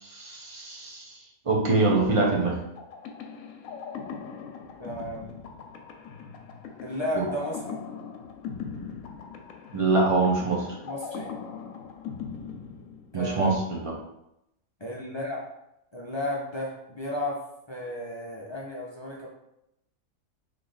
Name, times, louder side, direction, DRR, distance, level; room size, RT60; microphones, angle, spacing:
voice 1, 0.0-1.1 1.5-2.6 7.1-7.2 9.7-10.7 13.1-13.9, right 3 dB, 30° right, -1 dB, 0.7 m, -24 dB
sound 1, 2.8-13.4, left 6 dB, 90° left, 1.0 m, -40 dB
voice 2, 4.8-5.2 6.8-7.8 10.8-11.3 13.1-13.6 14.8-15.4 15.9-17.4 17.7-19.3, left 1 dB, 40° left, -4 dB, 0.4 m, -33 dB
3.4 x 3.2 x 4.0 m, 0.83 s
omnidirectional pair, 1.4 m